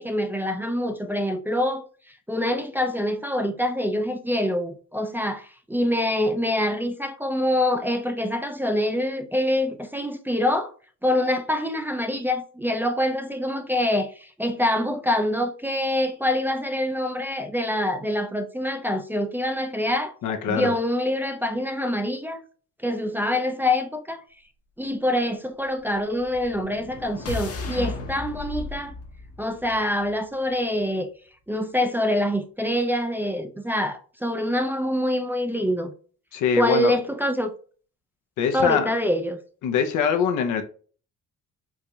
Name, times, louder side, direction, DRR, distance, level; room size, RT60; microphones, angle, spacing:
voice 1, 0.0-1.8 2.3-10.7 11.0-20.1 20.5-22.4 22.8-24.2 24.8-28.9 29.4-31.1 31.5-35.9 36.6-37.5 38.5-39.4, left 1 dB, 5° right, 0.4 m, -25 dB
voice 2, 20.2-20.7 36.3-36.9 38.4-38.9 39.6-40.6, left 7 dB, 80° left, 0.7 m, -23 dB
sound 1, 26.1-30.3, left 2 dB, 50° left, 0.9 m, -35 dB
4.6 x 2.6 x 2.3 m
cardioid pair, 90°, 30 cm